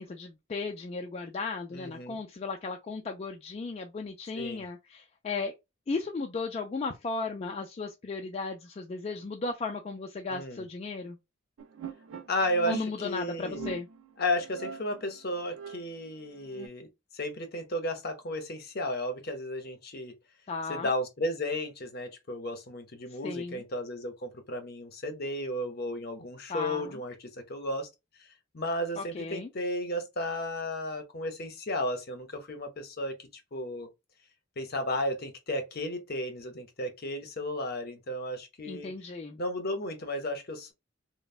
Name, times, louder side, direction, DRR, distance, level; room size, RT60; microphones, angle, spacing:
voice 1, 0.0-5.5 5.9-11.2 12.7-13.9 20.5-20.9 23.2-23.6 26.5-26.9 29.0-29.5 38.6-39.4, left 4 dB, 30° left, 0.3 m, -35 dB
voice 2, 1.7-2.2 4.3-4.7 10.3-10.7 12.3-13.7 14.2-16.9 17.1-20.1 20.7-27.9 28.5-33.9 34.6-38.9 39.4-40.7, left 1 dB, 50° left, 0.8 m, -34 dB
sound 1, 11.6-16.7, right 4 dB, 90° right, 0.4 m, -42 dB
3.1 x 2.0 x 2.4 m
head